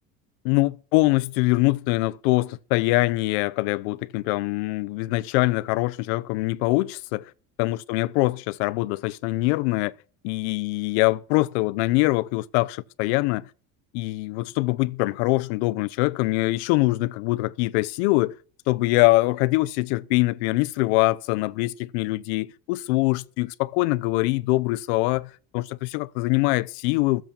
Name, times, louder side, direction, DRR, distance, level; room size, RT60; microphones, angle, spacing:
voice 1, 0.4-7.3 7.6-9.9 10.2-13.5 13.9-18.3 18.7-27.2, left 21 dB, 85° left, 0.8 m, -23 dB
16.0 x 7.7 x 7.0 m
cardioid pair, 170°, 32 cm